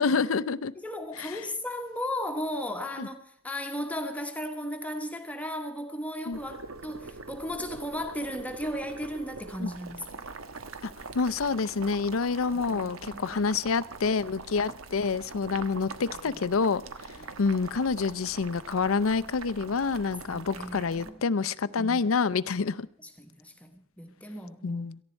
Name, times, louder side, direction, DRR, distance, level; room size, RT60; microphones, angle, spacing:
voice 1, 0.0-0.7 1.2-1.4 3.0-3.1 6.3-6.4 9.6-9.7 10.8-16.8 17.4-22.9 24.6-25.0, left 5 dB, 85° left, 16 dB, 0.6 m, -27 dB
voice 2, 0.8-10.3 12.5-13.5 17.2-17.4 20.3-21.2 21.8-22.1 23.0-24.8, left 1 dB, 5° left, 5 dB, 1.2 m, -36 dB
Boiling, 6.3-21.1, right 3 dB, 90° right, 1.3 m, -43 dB
18.0 x 14.5 x 4.4 m, 0.63 s
head